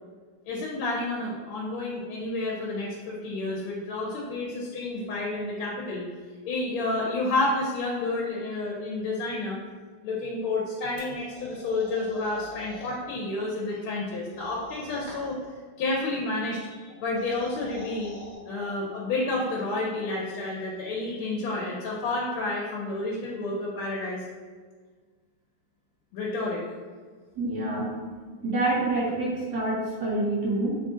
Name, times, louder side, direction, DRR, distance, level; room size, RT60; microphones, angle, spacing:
voice 1, 0.5-6.0 6.4-9.6 10.0-15.4 15.8-18.1 18.4-24.2 26.1-26.6, left 2 dB, 85° left, -3 dB, 1.5 m, -30 dB
sound 1, 11.0-13.0 14.3-15.5 16.9-18.4, equal, 40° left, 0.8 m, -44 dB
voice 2, 27.4-28.0 28.4-30.8, right 2 dB, 65° right, -4 dB, 1.1 m, -27 dB
3.8 x 2.4 x 3.6 m, 1.5 s
omnidirectional pair, 2.3 m